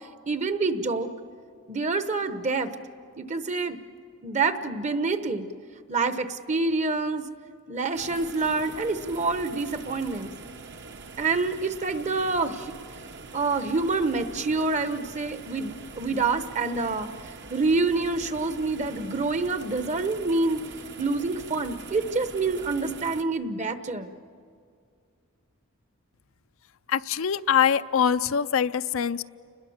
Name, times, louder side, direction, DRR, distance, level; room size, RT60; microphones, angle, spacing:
voice 1, 0.3-1.1 1.7-2.7 3.2-3.8 4.2-5.5 5.9-7.3 7.7-10.3 11.2-12.7 13.3-17.1 17.5-20.6 21.0-24.1, right 3 dB, 35° right, 10 dB, 1.0 m, -27 dB
sound 1, 7.9-23.2, right 3 dB, 55° right, 1.2 m, -43 dB
voice 2, 26.9-29.2, left 8 dB, 65° left, 12 dB, 0.5 m, -23 dB
29.5 x 21.0 x 7.2 m, 2.3 s
head